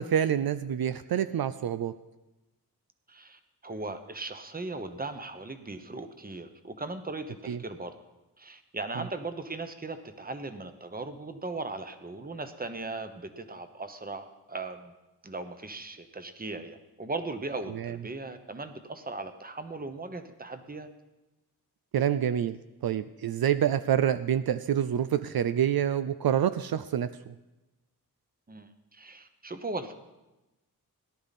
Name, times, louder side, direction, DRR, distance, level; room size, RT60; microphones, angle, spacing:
voice 1, 0.0-1.9 7.5-7.6 9.0-9.1 17.7-18.0 21.9-27.1, right 9 dB, 70° right, 12 dB, 0.5 m, -27 dB
voice 2, 3.1-7.9 8.4-14.9 15.2-20.9 28.5-29.9, right 3 dB, 25° right, 8 dB, 1.0 m, -38 dB
17.5 x 11.5 x 4.2 m, 1.0 s
wide cardioid pair, 125°, 38 cm